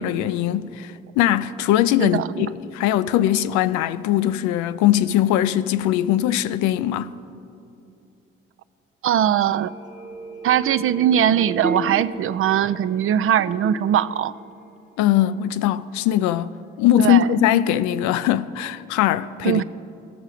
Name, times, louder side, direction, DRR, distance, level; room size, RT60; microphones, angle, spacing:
voice 1, 0.0-7.1 15.0-16.5 16.8-19.6, left 12 dB, 75° left, 0.4 m, -21 dB
voice 2, 2.0-2.5 9.0-9.7 10.4-14.3 17.0-17.3 19.4-19.6, right 10 dB, 45° right, 0.4 m, -20 dB
sound 1, 9.5-15.1 15.5-15.6, right 3 dB, 25° right, 1.1 m, -34 dB
17.0 x 6.5 x 4.8 m
hypercardioid pair, 45°, 29 cm